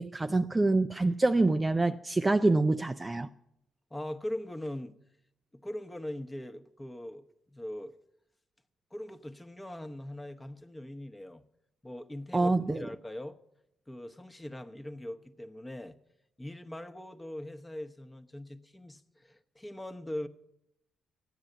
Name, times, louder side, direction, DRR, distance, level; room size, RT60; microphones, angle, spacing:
voice 1, 0.0-3.3 12.3-12.9, right 2 dB, 20° right, 0.4 m, -26 dB
voice 2, 3.9-5.0 5.5-7.2 7.5-7.9 8.9-11.4 11.8-13.4 13.9-16.0 16.4-20.3, left 1 dB, 15° left, 1.0 m, -41 dB
13.5 x 9.7 x 7.9 m
cardioid pair, 90°, 0 cm